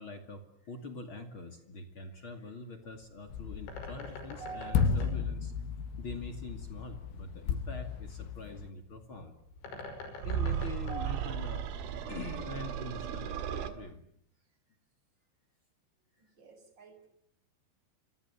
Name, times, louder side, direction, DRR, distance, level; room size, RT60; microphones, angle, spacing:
voice 1, 0.0-5.5 6.0-9.3 10.2-11.7 12.1-14.0, left 3 dB, 35° left, 6 dB, 2.4 m, -44 dB
Bird, 2.8-12.0, left 2 dB, 70° left, 7.9 m, -48 dB
sound 1, 3.3-8.7, left 6 dB, 85° left, 3.9 m, -34 dB
voice 2, 4.4-4.8 10.9-11.1 16.2-17.1, right 6 dB, 25° right, 7 dB, 5.5 m, -45 dB
sound 2, 10.2-13.7, right 9 dB, 80° right, 4.4 m, -35 dB
29.5 x 26.0 x 7.3 m, 0.68 s
omnidirectional pair, 5.5 m